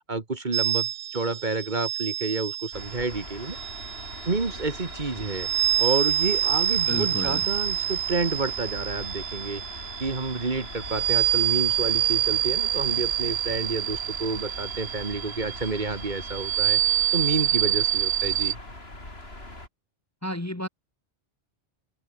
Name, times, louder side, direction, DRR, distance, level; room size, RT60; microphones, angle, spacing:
voice 1, 0.1-3.6 4.3-5.5 5.8-9.6 10.0-16.8 17.1-18.6, right 3 dB, 45° right, 1.9 m, -29 dB
sound 1, 0.5-18.5, right 11 dB, 80° right, 0.9 m, -27 dB
sound 2, 2.7-19.7, left 2 dB, 65° left, 5.5 m, -41 dB
voice 2, 6.9-7.5 20.2-20.7, left 1 dB, 15° left, 1.3 m, -31 dB
omnidirectional pair, 1.1 m